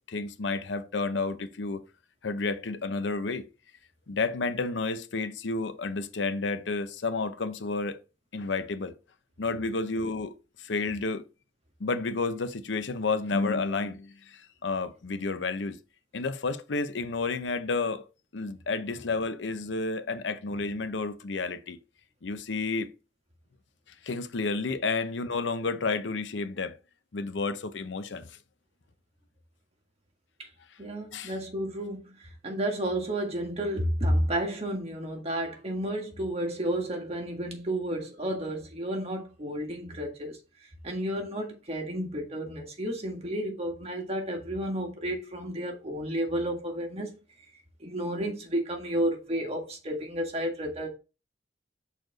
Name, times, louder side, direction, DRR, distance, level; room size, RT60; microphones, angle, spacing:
voice 1, 0.1-1.8 2.2-3.4 4.1-8.0 8.3-8.9 9.4-10.3 10.6-11.3 11.8-15.8 16.1-18.1 18.3-21.8 22.2-22.9 24.0-26.8 27.1-28.4 31.1-31.3, left 3 dB, 80° left, 0.7 m, -31 dB
voice 2, 30.8-47.1 47.8-50.9, right 1 dB, 35° right, 1.8 m, -31 dB
6.5 x 4.2 x 3.9 m
head